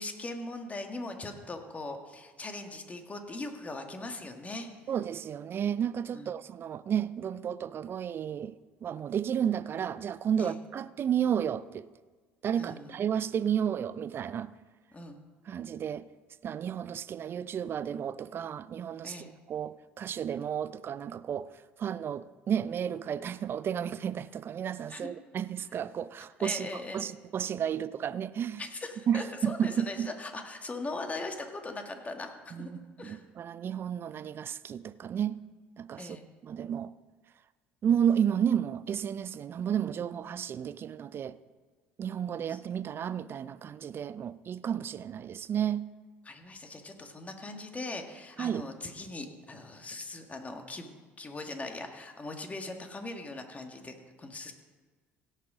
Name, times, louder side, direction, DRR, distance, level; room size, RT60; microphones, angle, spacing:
voice 1, 0.0-4.7 6.1-6.3 10.4-10.6 12.6-13.0 14.9-15.1 19.0-19.3 24.9-25.1 26.4-27.1 28.6-32.7 33.0-33.2 36.0-36.2 42.5-42.6 46.3-54.5, left 2 dB, 25° left, 1.9 m, -40 dB
voice 2, 4.9-8.5 8.8-11.9 12.4-14.5 15.5-16.0 16.4-19.2 19.5-21.5 21.8-26.7 26.9-28.6 29.1-30.1 32.5-35.4 35.8-36.2 36.4-36.9 37.8-41.3 42.0-45.8 48.4-48.7, right 8 dB, 45° right, 0.5 m, -32 dB
17.0 x 6.6 x 5.0 m
hypercardioid pair, 65°, 5 cm